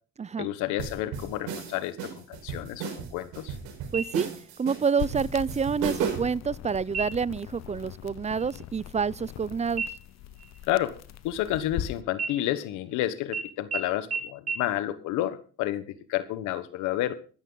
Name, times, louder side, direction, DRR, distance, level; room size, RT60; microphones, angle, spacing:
voice 1, 0.4-3.6 10.7-11.0 11.2-17.1, left 13 dB, 80° left, 1.3 m, -30 dB
sound 1, 0.8-6.4, right 7 dB, 85° right, 4.8 m, -35 dB
voice 2, 3.9-4.3 4.6-9.8, right 6 dB, 25° right, 0.5 m, -28 dB
sound 2, 3.9-4.6 5.0-5.1 5.6-6.2 6.9-7.4 7.8-8.0 8.3-9.4 9.8-11.8 12.1-12.9 13.3-13.4 13.7-13.8 14.1-14.2 14.5-14.6, right 5 dB, 55° right, 4.1 m, -35 dB
sound 3, 5.0-12.0, left 12 dB, 65° left, 1.0 m, -40 dB
14.0 x 13.0 x 3.9 m
supercardioid pair, 75°, 29 cm